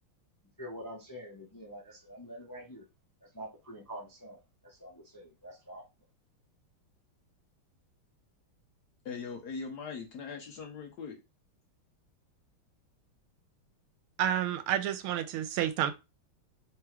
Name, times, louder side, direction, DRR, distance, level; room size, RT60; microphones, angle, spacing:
voice 1, 0.6-2.8 3.2-5.8, equal, 30° left, 0.3 m, -46 dB
voice 2, 9.0-11.2, left 5 dB, 65° left, 1.0 m, -40 dB
voice 3, 14.2-15.9, right 10 dB, 90° right, 1.5 m, -30 dB
3.5 x 3.0 x 4.5 m
omnidirectional pair, 2.3 m